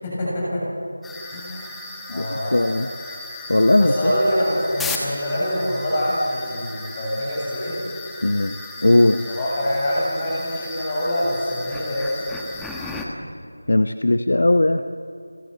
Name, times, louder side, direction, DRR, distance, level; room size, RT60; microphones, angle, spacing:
voice 1, 0.0-0.6 1.3-1.7 2.1-2.6 3.7-7.8 9.3-12.3, equal, 20° left, -6 dB, 7.3 m, -25 dB
sound 1, 1.0-13.1, left 3 dB, 5° left, 1.2 m, -35 dB
voice 2, 2.1-2.9 3.5-4.1 8.2-8.5 8.8-9.2 13.7-14.8, left 2 dB, 60° left, 9 dB, 0.8 m, -18 dB
29.5 x 14.5 x 7.6 m, 2.5 s
figure-of-eight pair, 165°, 0 cm